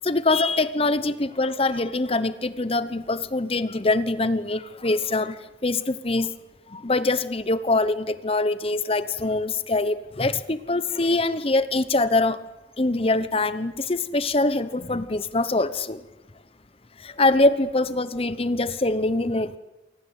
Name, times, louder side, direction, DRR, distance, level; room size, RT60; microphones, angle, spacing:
voice 1, 0.0-6.3 6.7-12.4 12.8-16.0 17.0-19.6, left 2 dB, 30° left, 14 dB, 1.0 m, -24 dB
28.5 x 23.5 x 8.2 m, 1.0 s
head